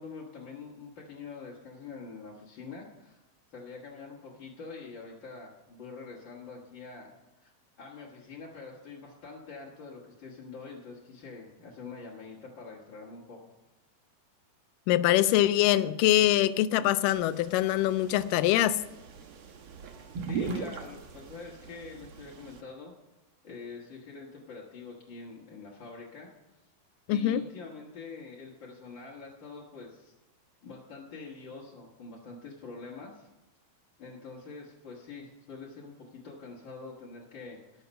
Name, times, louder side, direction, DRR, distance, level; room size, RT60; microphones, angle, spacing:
voice 1, 0.0-3.2 3.5-7.1 7.4-7.5 7.8-13.5 20.2-22.9 23.4-26.3 27.1-30.1 30.6-33.3 34.0-37.8, left 4 dB, 45° left, 1.7 m, -45 dB
voice 2, 14.9-18.8 27.1-27.4, left 13 dB, 85° left, 1.9 m, -24 dB
sound 1, 17.2-22.6, right 5 dB, 75° right, 1.2 m, -40 dB
19.5 x 6.7 x 5.4 m
omnidirectional pair, 4.3 m